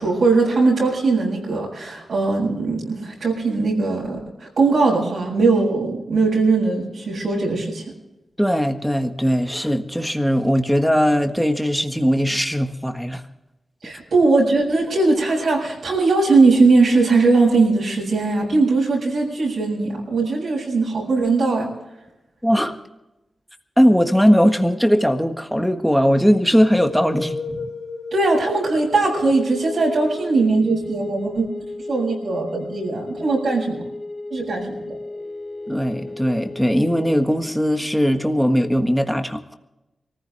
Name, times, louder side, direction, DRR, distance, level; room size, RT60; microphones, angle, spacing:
voice 1, 0.0-7.8 13.8-21.7 28.1-31.5 31.9-33.8 34.3-35.0, right 3 dB, 75° right, -3 dB, 7.0 m, -19 dB
voice 2, 8.4-13.2 22.4-22.8 23.8-27.4 35.7-39.5, equal, ahead, 6 dB, 1.5 m, -19 dB
sound 1, 26.8-37.4, left 2 dB, 65° left, 2.9 m, -33 dB
24.0 x 15.0 x 3.5 m, 0.98 s
cardioid pair, 75°, 0 cm